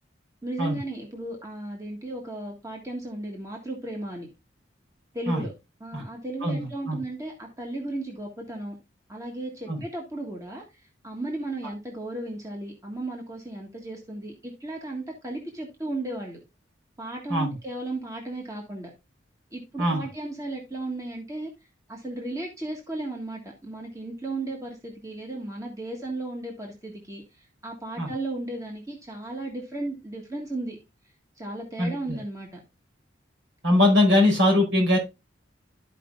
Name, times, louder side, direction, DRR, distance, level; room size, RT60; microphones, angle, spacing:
voice 1, 0.4-4.3 5.1-5.5 5.8-8.8 9.1-16.4 17.0-18.9 19.5-21.5 21.9-30.8 31.4-32.6, right 2 dB, 15° right, 1.6 m, -35 dB
voice 2, 6.4-7.0 9.7-9.8 17.3-17.5 19.8-20.0 28.0-28.1 31.8-32.2 33.6-35.0, left 1 dB, 70° right, 4.9 m, -21 dB
13.5 x 5.1 x 2.5 m
head